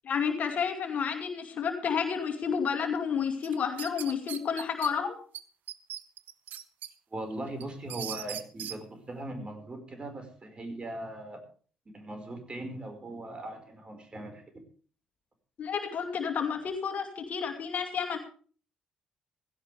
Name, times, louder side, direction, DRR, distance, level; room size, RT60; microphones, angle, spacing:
voice 1, 0.0-5.2 15.6-18.2, left 6 dB, 50° left, 5 dB, 2.4 m, -30 dB
sound 1, 3.4-4.9 5.3-5.4 5.7-6.9 7.3-8.8, right 11 dB, 60° right, 0.8 m, -39 dB
voice 2, 7.1-11.4 11.9-14.4, right 1 dB, 30° right, 5 dB, 5.0 m, -39 dB
16.5 x 16.5 x 3.4 m, 0.42 s
hypercardioid pair, 45°, 3 cm